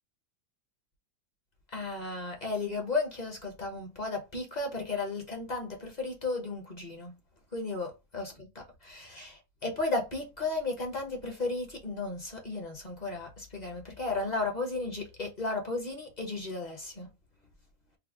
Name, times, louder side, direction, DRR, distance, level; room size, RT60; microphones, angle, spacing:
voice 1, 1.7-7.1 7.5-17.1, left 3 dB, 35° left, 1.1 m, -34 dB
3.5 x 2.2 x 3.6 m
omnidirectional pair, 1.5 m